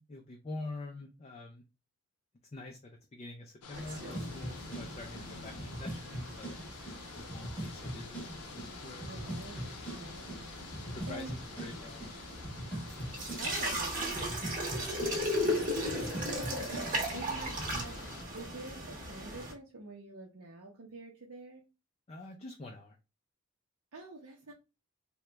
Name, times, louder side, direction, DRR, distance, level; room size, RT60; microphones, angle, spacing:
voice 1, 0.0-1.6 2.5-6.6 7.1-8.2 8.5-9.4 10.9-11.3 11.6-12.0 16.9-17.1 22.1-23.0, left 2 dB, 30° left, 2 dB, 0.3 m, -46 dB
sound 1, 3.6-18.2, left 4 dB, 90° left, 0.5 m, -49 dB
sound 2, 3.7-19.5, equal, 35° right, 0.8 m, -38 dB
sound 3, 4.1-17.8, right 1 dB, 5° left, 0.8 m, -43 dB
voice 2, 9.0-10.4 10.8-11.3 13.4-14.3 15.5-16.4 16.9-18.0 18.3-21.6 23.9-24.5, right 2 dB, 65° right, -2 dB, 0.6 m, -47 dB
2.9 x 2.2 x 3.2 m, 0.28 s
head